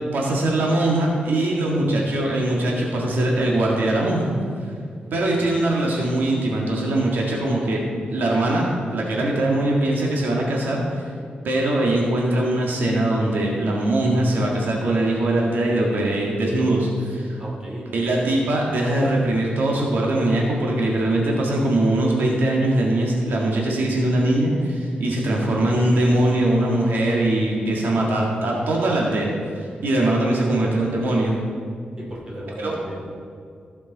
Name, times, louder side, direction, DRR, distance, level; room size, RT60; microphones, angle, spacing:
voice 1, 0.1-4.3 5.1-7.8 8.1-11.0 11.4-17.4 17.9-31.4 32.6-32.7, right 1 dB, 80° right, -2 dB, 1.7 m, -21 dB
voice 2, 1.8-2.4 5.4-5.5 17.4-17.9 25.0-25.5 30.4-30.8 32.0-33.1, equal, 25° right, -3 dB, 2.5 m, -37 dB
15.0 x 6.9 x 4.0 m, 2.2 s
wide cardioid pair, 145°, 3 cm